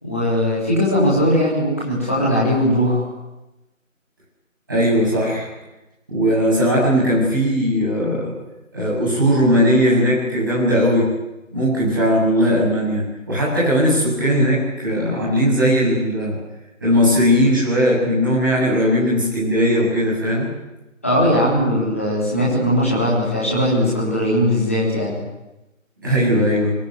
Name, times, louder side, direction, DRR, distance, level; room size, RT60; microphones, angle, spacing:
voice 1, 0.0-3.0 21.0-25.2, equal, 10° left, -6 dB, 3.7 m, -19 dB
voice 2, 4.7-5.5 6.1-8.3 8.7-11.1 11.5-16.4 16.8-20.5 26.0-26.7, equal, 15° right, -7 dB, 7.6 m, -18 dB
25.0 x 22.5 x 9.9 m, 1.0 s
figure-of-eight pair, 180°, 41 cm